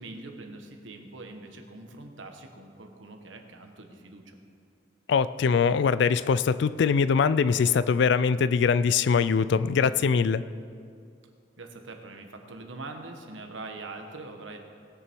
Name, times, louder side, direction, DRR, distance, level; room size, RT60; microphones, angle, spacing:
voice 1, 0.0-4.4 11.6-14.6, right 2 dB, 80° right, 4 dB, 1.2 m, -43 dB
voice 2, 5.1-10.4, left 6 dB, 65° left, 15 dB, 0.4 m, -22 dB
19.0 x 6.8 x 4.5 m, 2.3 s
head